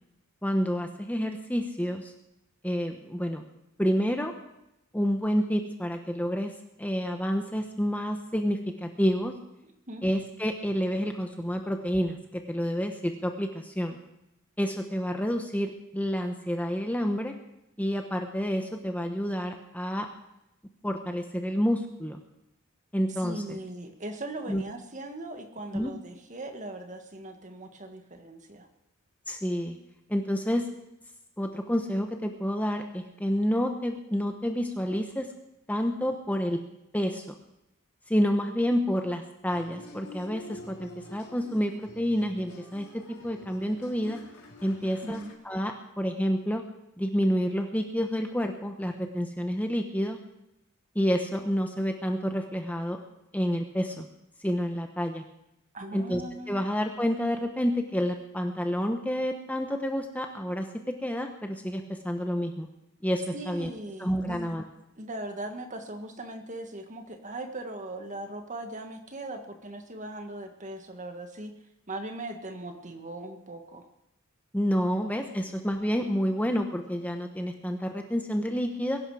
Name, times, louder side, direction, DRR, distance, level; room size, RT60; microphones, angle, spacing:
voice 1, 0.4-2.1 2.6-3.4 3.8-4.3 4.9-6.5 6.8-9.3 10.0-14.0 14.6-17.3 17.8-20.1 20.8-22.2 22.9-23.6 24.5-24.6 25.7-25.9 29.3-29.8 30.1-30.6 31.4-35.3 35.7-36.6 36.9-37.4 38.1-44.2 44.6-46.6 47.0-50.2 50.9-53.0 53.3-54.1 54.4-55.2 55.9-56.2 56.5-62.7 63.0-63.7 64.0-64.6 74.5-79.0, equal, 5° left, 4 dB, 1.1 m, -29 dB
voice 2, 23.2-28.7 44.8-45.3 55.7-56.7 63.3-64.6 65.0-71.5 71.9-73.9, right 1 dB, 35° right, 6 dB, 1.8 m, -39 dB
sound 1, 39.4-45.3, left 1 dB, 85° left, 4.0 m, -48 dB
22.0 x 11.5 x 5.0 m, 0.86 s
head